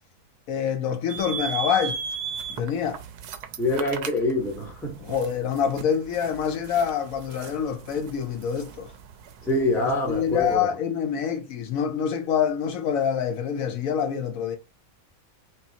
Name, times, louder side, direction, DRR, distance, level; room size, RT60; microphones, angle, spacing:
voice 1, 0.5-2.0 2.6-3.0 5.0-8.9 9.7-14.6, left 7 dB, 70° left, 0.9 m, -26 dB
sound 1, 1.1-10.6, right 7 dB, 85° right, 1.1 m, -37 dB
voice 2, 3.6-5.0 9.4-10.7, left 2 dB, ahead, 0.6 m, -25 dB
5.4 x 2.3 x 2.7 m
omnidirectional pair, 1.7 m